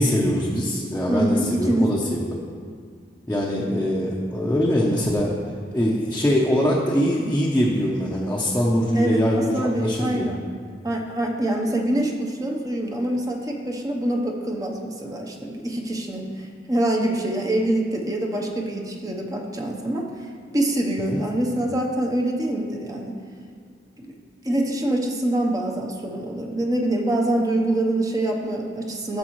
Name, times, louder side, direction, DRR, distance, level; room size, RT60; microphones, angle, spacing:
voice 1, 0.0-2.4 3.3-5.4 5.7-10.3 21.1-21.2, equal, 10° left, -5 dB, 0.8 m, -22 dB
voice 2, 1.1-2.1 8.9-10.4 10.8-20.3 20.5-23.1 24.0-24.1 24.4-29.2, right 1 dB, 20° right, 0 dB, 0.9 m, -25 dB
13.5 x 6.8 x 3.1 m, 2.1 s
head